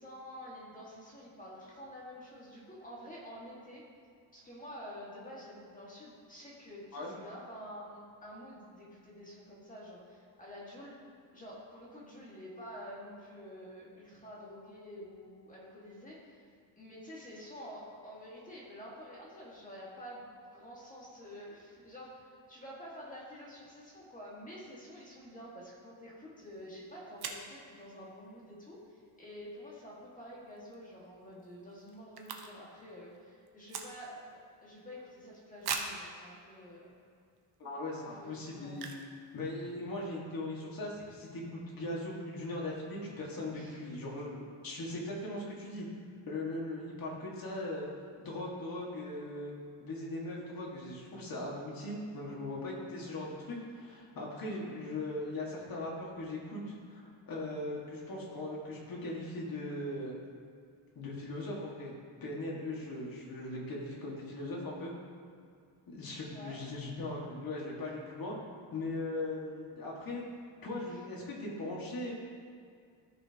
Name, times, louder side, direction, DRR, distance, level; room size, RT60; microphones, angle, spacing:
voice 1, 0.0-3.8 4.3-11.0 11.3-16.5 16.8-37.0 37.9-39.0 43.5-43.9 66.3-66.6 70.9-71.0, equal, 15° left, -6 dB, 1.9 m, -49 dB
sound 1, 26.5-26.6 27.2-27.5 30.5-30.7 31.1-31.2 31.3-32.8 33.1-34.3 34.8-34.9 35.6-36.1 36.8-36.9 37.4-37.5 38.7-39.2 39.4-39.5 39.7-40.0, right 5 dB, 50° right, 0.8 m, -40 dB
voice 2, 37.6-38.9 39.3-45.9 46.3-47.9 48.2-49.5 49.8-60.1 61.0-61.9 62.2-64.9 65.9-68.4 68.7-70.2 70.6-72.1, left 2 dB, 45° left, -3 dB, 1.9 m, -39 dB
13.5 x 6.3 x 2.9 m, 2.2 s
cardioid pair, 165°, 47 cm